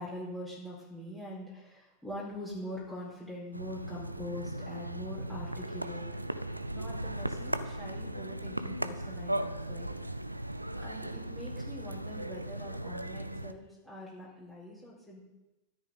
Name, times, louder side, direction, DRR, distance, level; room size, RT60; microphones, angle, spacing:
voice 1, 0.0-6.1 6.7-9.9 10.7-15.2, left 1 dB, 5° left, -7 dB, 4.7 m, -43 dB
sound 1, 3.5-13.5, right 1 dB, 85° right, 0.5 m, -37 dB
13.0 x 11.5 x 4.0 m, 1.0 s
figure-of-eight pair, 90°, 0 cm